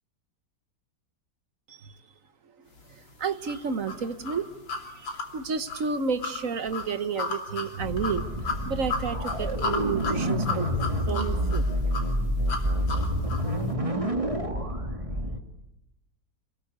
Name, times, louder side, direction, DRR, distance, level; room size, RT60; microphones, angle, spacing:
voice 1, 3.2-4.5 5.0-5.1 5.3-8.3 8.7-10.7 11.1-11.7, right 5 dB, 50° right, 12 dB, 1.4 m, -31 dB
sound 1, 3.5-13.5, left 3 dB, 85° left, 3.8 m, -34 dB
sound 2, 7.8-15.4, equal, 15° right, 2.3 m, -28 dB
28.0 x 21.0 x 8.4 m, 0.85 s
omnidirectional pair, 2.0 m